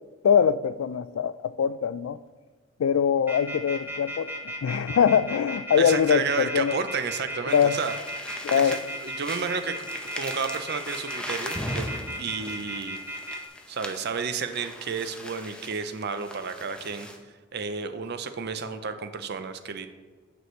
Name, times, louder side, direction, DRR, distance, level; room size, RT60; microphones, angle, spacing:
voice 1, 0.2-2.2 2.8-4.3 4.6-6.7 7.5-7.8 8.4-8.8, left 7 dB, 90° left, 0.3 m, -23 dB
sound 1, 3.3-13.4, equal, 10° right, 1.0 m, -35 dB
voice 2, 5.8-7.9 8.5-9.9 10.1-11.9 12.2-13.0 13.7-17.1 17.5-19.9, right 5 dB, 55° right, 0.6 m, -31 dB
sound 2, 7.5-17.2, equal, 5° left, 0.7 m, -39 dB
9.3 x 6.3 x 3.2 m
head